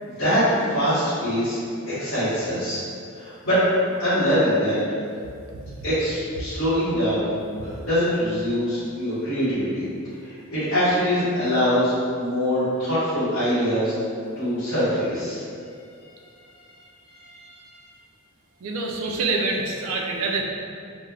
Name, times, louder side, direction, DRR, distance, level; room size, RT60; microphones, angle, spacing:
voice 1, 0.0-1.6 1.9-2.8 3.1-3.6 4.0-4.8 5.8-7.3 7.6-9.8 10.2-13.9 14.4-15.4 17.2-17.8, equal, 55° left, -17 dB, 1.1 m, -23 dB
voice 2, 18.6-20.4, right 3 dB, 80° right, 0 dB, 0.4 m, -26 dB
3.2 x 2.1 x 2.3 m, 2.4 s
head